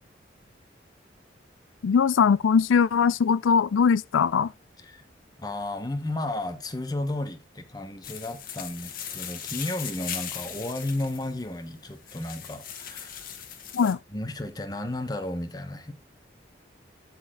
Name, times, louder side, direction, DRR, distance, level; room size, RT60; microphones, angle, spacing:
voice 1, 1.8-4.5 13.7-14.0, left 6 dB, 85° left, 0.4 m, -21 dB
voice 2, 5.4-13.3 13.8-15.9, left 1 dB, 20° left, 0.9 m, -33 dB
sound 1, 8.0-13.9, left 8 dB, 45° left, 1.5 m, -39 dB
12.5 x 4.3 x 3.7 m
head